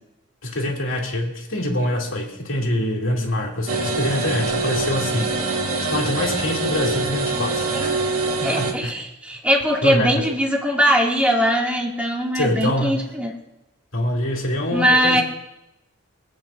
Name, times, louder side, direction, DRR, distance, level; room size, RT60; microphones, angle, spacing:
voice 1, 0.4-5.4 5.9-8.1 8.4-8.9 9.8-10.3 12.3-13.1 13.9-15.2, left 1 dB, 65° left, -2 dB, 2.7 m, -25 dB
sound 1, 3.7-8.7, right 3 dB, 75° right, 2.2 m, -24 dB
voice 2, 8.4-13.3 14.7-15.2, equal, 5° right, -2 dB, 2.2 m, -20 dB
25.0 x 8.9 x 2.6 m, 0.92 s
head